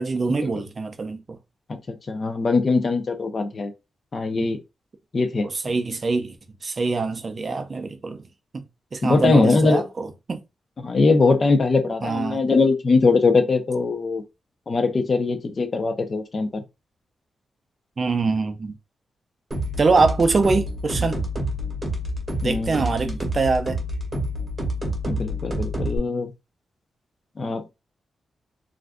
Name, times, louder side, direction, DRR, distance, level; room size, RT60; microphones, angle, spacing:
voice 1, 0.0-1.4 4.3-4.5 5.4-6.3 6.6-8.2 8.5-8.6 8.9-10.4 12.0-12.4 18.0-18.8 19.8-21.3 22.4-23.8, right 4 dB, 30° right, 0.4 m, -24 dB
voice 2, 2.1-3.7 4.1-4.6 5.1-5.5 9.0-9.8 10.8-14.2 14.7-16.6 21.0-21.1 22.4-23.2 25.1-26.3 27.4-27.7, left 3 dB, 35° left, 0.5 m, -21 dB
sound 1, 19.5-26.0, equal, 15° right, 0.8 m, -28 dB
2.5 x 2.2 x 3.5 m
wide cardioid pair, 170°, 0 cm